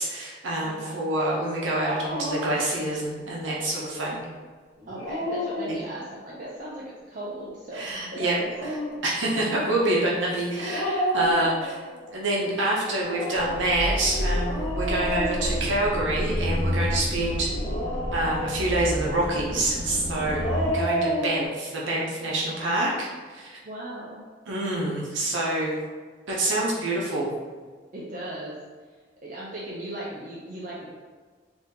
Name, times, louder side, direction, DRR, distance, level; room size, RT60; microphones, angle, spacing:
voice 1, 0.0-4.2 7.7-8.4 9.0-11.7 12.1-17.6 18.1-20.4 20.7-23.6 24.5-25.8 26.3-27.4, right 1 dB, 85° right, -4 dB, 0.6 m, -26 dB
voice 2, 0.6-1.0 4.9-8.7 11.4-11.5 23.6-24.2 27.9-28.6 28.9-29.0 29.2-30.9, right 1 dB, 45° right, -6 dB, 0.4 m, -37 dB
Dog, 2.1-2.7 4.8-6.2 8.3-9.0 10.5-12.0 12.9-16.1 17.4-18.8 20.1-21.5, equal, 25° left, 1.1 m, -30 dB
sound 1, 13.4-20.7, equal, 10° left, 1.3 m, -30 dB
3.6 x 2.6 x 2.7 m, 1.5 s
head